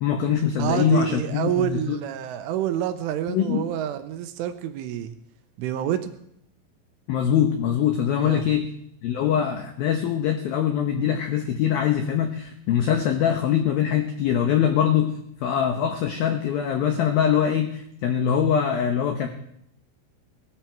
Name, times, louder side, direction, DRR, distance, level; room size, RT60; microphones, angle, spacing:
voice 1, 0.0-2.0 3.3-3.7 7.1-8.7 9.0-15.1 15.4-19.3, left 9 dB, 80° left, 6 dB, 2.1 m, -23 dB
voice 2, 0.6-5.2 5.6-6.1 8.2-8.4, right 11 dB, 75° right, 9 dB, 3.2 m, -27 dB
19.5 x 13.5 x 4.6 m, 0.72 s
omnidirectional pair, 6.0 m